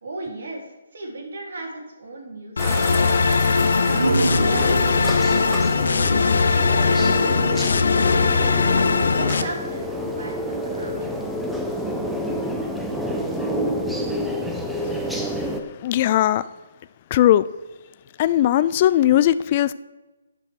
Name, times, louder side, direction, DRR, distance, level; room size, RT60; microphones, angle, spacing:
voice 1, 0.0-3.0 3.6-6.1 6.5-10.3 10.7-11.2, right 2 dB, 60° right, -1 dB, 3.7 m, -37 dB
sound 1, 2.6-9.4, left 4 dB, 65° left, 0.7 m, -20 dB
sound 2, 2.6-15.6, equal, ahead, 1.0 m, -29 dB
sound 3, 3.9-7.3, right 2 dB, 85° right, 0.8 m, -27 dB
voice 2, 14.8-15.4 15.8-16.5 17.1-17.4 18.2-19.7, left 12 dB, 35° left, 15 dB, 0.4 m, -19 dB
11.5 x 6.1 x 6.3 m, 1.1 s
figure-of-eight pair, 145°, 0 cm